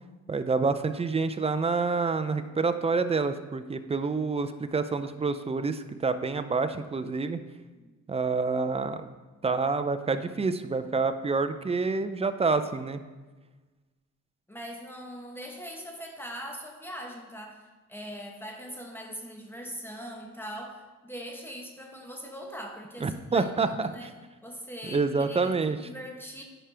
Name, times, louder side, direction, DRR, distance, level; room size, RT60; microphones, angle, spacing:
voice 1, 0.3-7.4 8.1-9.1 9.4-13.0 23.0-24.1 24.8-25.8, right 4 dB, 20° right, 10 dB, 0.4 m, -28 dB
voice 2, 14.5-24.1 24.4-25.5 25.8-26.4, equal, 5° left, 1 dB, 1.1 m, -41 dB
10.0 x 5.0 x 3.4 m, 1.3 s
cardioid pair, 90°, 30 cm